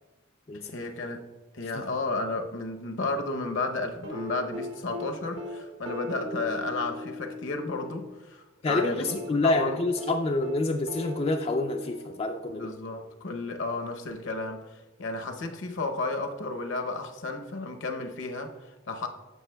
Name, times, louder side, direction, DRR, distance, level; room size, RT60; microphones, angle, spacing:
voice 1, 0.6-1.2 1.5-9.8 12.5-19.1, left 3 dB, 65° left, 0.7 m, -33 dB
sound 1, 4.0-8.1 9.1-12.7 14.1-14.2, left 2 dB, 70° right, 1.1 m, -38 dB
voice 2, 8.6-12.7, left 2 dB, 30° left, 0.3 m, -27 dB
11.0 x 7.1 x 2.2 m
head